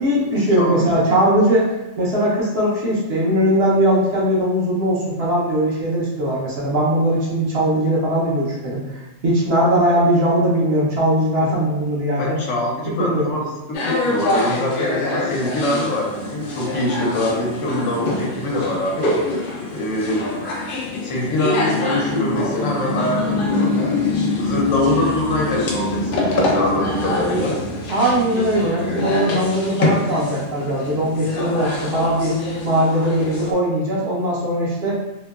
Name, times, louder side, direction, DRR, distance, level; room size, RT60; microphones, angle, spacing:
voice 1, 0.0-12.4 13.0-13.3 27.9-32.4 32.6-35.0, right 1 dB, 60° right, -6 dB, 0.9 m, -20 dB
voice 2, 0.6-1.2 12.2-19.1 19.7-20.3 21.0-23.7 24.4-27.6, left 1 dB, 80° left, -3 dB, 1.0 m, -23 dB
sound 1, 13.7-33.5, left 2 dB, 60° left, 0.6 m, -25 dB
2.9 x 2.1 x 2.2 m, 1.0 s
omnidirectional pair, 1.3 m